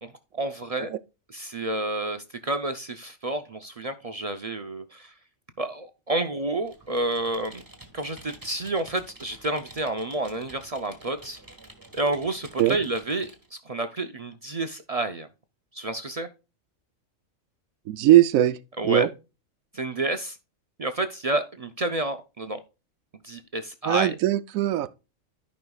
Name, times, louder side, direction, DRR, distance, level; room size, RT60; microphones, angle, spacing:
voice 1, 0.0-0.9 1.3-5.1 5.6-7.6 7.9-11.4 11.9-15.3 15.7-16.3 18.8-19.0 19.7-20.4 20.8-22.6 23.2-24.2, right 2 dB, 45° right, 0.5 m, -30 dB
Computer keyboard, 6.6-13.5, right 2 dB, 15° right, 1.4 m, -49 dB
voice 2, 17.9-18.6 18.8-19.1 23.8-24.9, right 13 dB, 85° right, 1.0 m, -20 dB
14.0 x 5.3 x 2.3 m
omnidirectional pair, 1.4 m